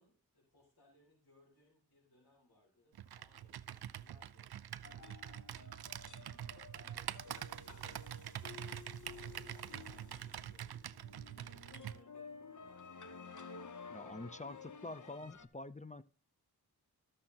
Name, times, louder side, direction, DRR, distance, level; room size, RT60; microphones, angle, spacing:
voice 1, 0.0-8.6 9.0-13.5 14.3-15.2, left 1 dB, 70° left, 4.6 m, -70 dB
Computer keyboard, 2.9-12.0, right 10 dB, 70° right, 0.5 m, -46 dB
sound 1, 4.8-15.5, left 5 dB, 50° left, 0.9 m, -53 dB
voice 2, 13.9-16.0, left 2 dB, 20° left, 0.5 m, -46 dB
14.0 x 6.5 x 2.9 m
wide cardioid pair, 60°, 39 cm